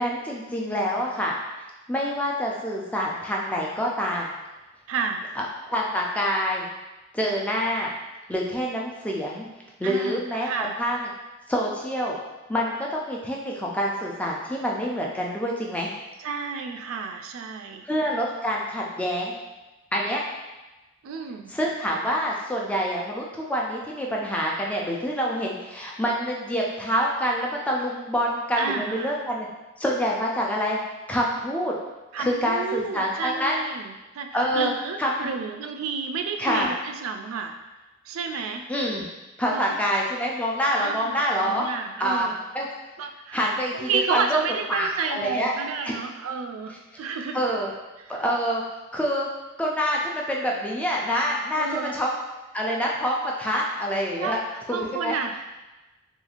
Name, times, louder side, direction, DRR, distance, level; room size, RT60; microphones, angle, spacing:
voice 1, 0.0-1.3 1.9-4.3 5.4-6.7 7.1-7.9 8.3-9.5 9.8-11.1 11.5-12.2 12.5-15.9 17.8-19.3 19.9-20.2 21.5-29.5 29.8-30.8 31.1-31.8 32.2-33.5 34.3-34.7 35.0-35.3 36.4-36.7 38.7-39.0 39.4-41.7 42.0-42.3 42.5-42.7 43.3-44.4 44.7-45.5 45.8-45.9 47.3-47.7 48.2-48.6 48.9-49.3 49.6-52.1 52.5-54.4 54.7-55.2, equal, 5° left, -2 dB, 0.3 m, -26 dB
voice 2, 4.9-5.3 9.8-10.8 16.2-17.9 21.0-21.5 28.5-29.2 32.1-37.6 38.0-38.7 39.5-39.8 40.8-42.4 43.0-47.4 48.0-48.2 51.5-52.0 54.2-55.4, right 5 dB, 85° right, 6 dB, 0.3 m, -31 dB
2.9 x 2.3 x 2.4 m, 1.1 s
head